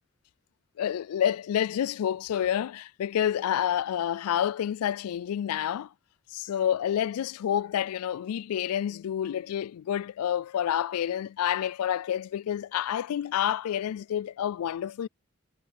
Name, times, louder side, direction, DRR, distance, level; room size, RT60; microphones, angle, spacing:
voice 1, 0.8-5.9 6.3-15.1, left 10 dB, 85° left, 0.3 m, -28 dB
head